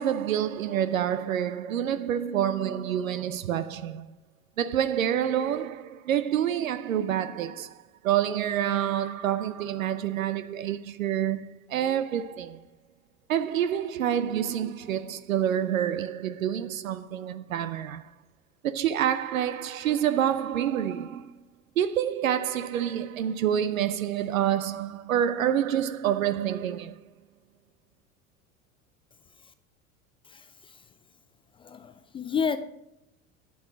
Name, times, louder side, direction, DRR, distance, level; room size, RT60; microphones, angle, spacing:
voice 1, 0.0-4.1 4.6-7.7 8.0-12.6 13.3-18.1 18.6-21.3 21.8-26.9, right 10 dB, 70° right, 0.7 m, -27 dB
voice 2, 30.3-30.8 31.6-32.6, left 6 dB, 15° left, 0.3 m, -31 dB
9.3 x 8.6 x 5.0 m
figure-of-eight pair, 75°, 41 cm